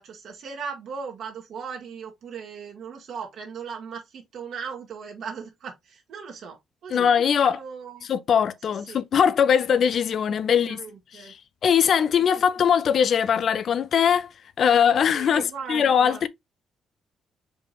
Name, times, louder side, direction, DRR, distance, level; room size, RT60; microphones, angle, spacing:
voice 1, 0.0-8.1 8.9-9.0 10.5-11.3 14.6-14.8 15.1-16.2, right 6 dB, 70° right, 1.7 m, -38 dB
voice 2, 6.9-7.6 8.1-10.8 11.1-11.4 11.6-14.3 14.6-15.4 15.7-16.3, left 8 dB, 60° left, 0.5 m, -21 dB
5.0 x 3.5 x 2.9 m
cardioid pair, 90°, 0 cm